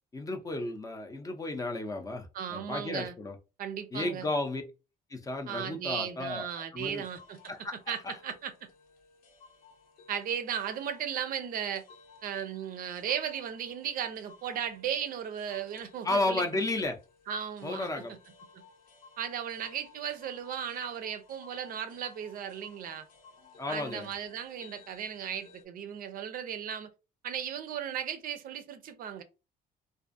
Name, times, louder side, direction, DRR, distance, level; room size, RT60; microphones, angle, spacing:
voice 1, 0.1-3.3 3.9-4.6 5.1-6.5 6.7-7.0 7.5-7.8 16.0-17.0 17.6-18.1 23.6-24.1, left 2 dB, 20° left, 0.5 m, -33 dB
voice 2, 2.3-3.1 3.6-4.3 5.5-7.5 7.9-8.5 10.1-11.8 12.2-16.6 17.3-18.2 18.5-18.6 19.2-23.1 23.7-26.9 27.2-29.2, right 8 dB, 55° right, 0.4 m, -36 dB
sound 1, 6.8-25.6, left 4 dB, 60° left, 0.8 m, -57 dB
2.5 x 2.3 x 2.5 m
cardioid pair, 110°, 17 cm